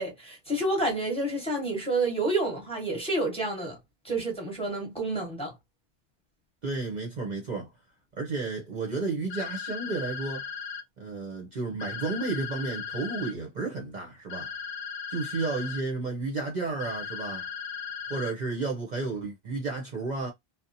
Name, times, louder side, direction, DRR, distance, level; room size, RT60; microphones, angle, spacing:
voice 1, 0.0-3.8 4.0-5.5, right 2 dB, 5° left, 1.0 m, -29 dB
voice 2, 6.6-7.7 8.2-10.5 11.0-14.5 15.1-17.5 18.1-20.3, right 3 dB, 45° right, 0.7 m, -32 dB
sound 1, 9.3-10.8 11.8-13.3 14.3-15.8 16.8-18.3, left 7 dB, 65° left, 0.7 m, -37 dB
2.8 x 2.0 x 2.6 m
omnidirectional pair, 1.1 m